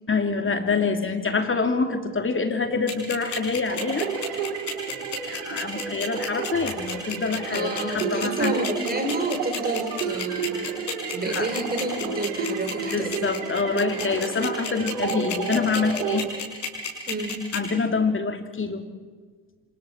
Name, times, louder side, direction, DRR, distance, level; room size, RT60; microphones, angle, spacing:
voice 1, 0.1-4.1 5.3-8.6 11.2-11.5 12.9-16.3 17.5-18.8, left 4 dB, 25° left, 6 dB, 2.8 m, -26 dB
sound 1, 2.9-17.6, left 6 dB, 85° left, 4.8 m, -31 dB
sound 2, 3.7-16.2, right 6 dB, 70° right, 3.0 m, -31 dB
voice 2, 7.5-10.7 11.1-13.3 17.1-17.4, right 2 dB, 20° right, 5 dB, 4.3 m, -30 dB
27.5 x 26.5 x 4.5 m, 1.4 s
figure-of-eight pair, 55°, 49 cm